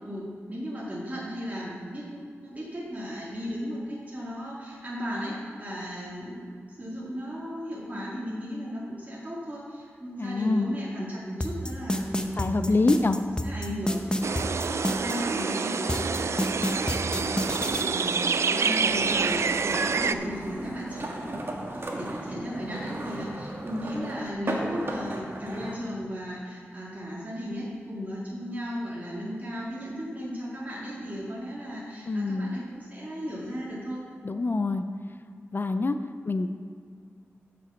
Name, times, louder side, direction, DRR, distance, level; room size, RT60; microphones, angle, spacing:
voice 1, 0.0-6.5 6.8-21.4 21.7-34.0, equal, 35° right, -7 dB, 2.1 m, -36 dB
voice 2, 10.2-10.7 12.4-13.2 32.1-32.6 34.2-34.8 35.5-36.0 36.3-36.6, left 3 dB, 45° left, 9 dB, 0.5 m, -25 dB
sound 1, 11.4-15.2 15.9-17.8, equal, 15° left, 0.9 m, -28 dB
sound 2, 14.2-20.1, right 5 dB, 70° right, 0.3 m, -27 dB
sound 3, 18.8-25.7, right 1 dB, 55° right, 1.4 m, -36 dB
8.0 x 6.0 x 7.0 m, 2.1 s
wide cardioid pair, 60°, 5 cm